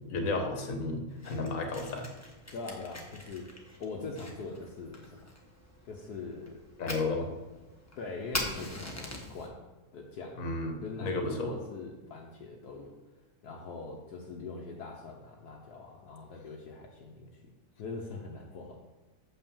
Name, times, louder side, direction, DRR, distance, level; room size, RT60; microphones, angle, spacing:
voice 1, 0.1-2.1 6.8-7.3 10.4-11.5, left 2 dB, 55° left, 4 dB, 1.5 m, -33 dB
Fire, 1.1-9.5, left 1 dB, 10° left, 0.9 m, -43 dB
voice 2, 2.5-3.5 3.8-5.2 5.8-6.6 8.0-9.6 9.9-12.9 13.4-17.5 17.8-18.7, left 3 dB, 70° left, -1 dB, 1.4 m, -42 dB
6.3 x 5.7 x 7.0 m, 1.1 s
omnidirectional pair, 1.8 m